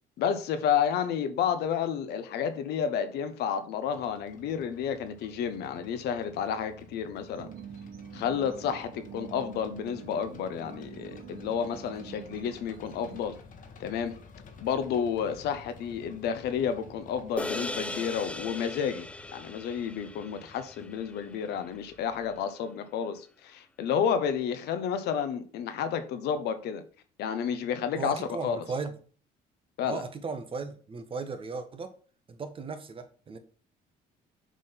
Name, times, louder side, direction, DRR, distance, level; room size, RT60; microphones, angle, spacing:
voice 1, 0.2-7.5 8.1-13.4 13.8-14.2 14.6-19.1 19.3-26.8 27.2-28.6 29.8-30.0, left 7 dB, 80° left, 1.0 m, -31 dB
sound 1, 3.9-22.5, left 4 dB, 50° left, 1.4 m, -53 dB
sound 2, 7.3-13.2, right 8 dB, 60° right, 0.8 m, -46 dB
sound 3, 17.4-21.9, left 1 dB, 5° left, 0.5 m, -38 dB
voice 2, 28.0-28.9 29.8-31.9 32.3-33.4, right 4 dB, 30° right, 1.2 m, -36 dB
7.3 x 3.8 x 5.8 m
cardioid pair, 110°, 17 cm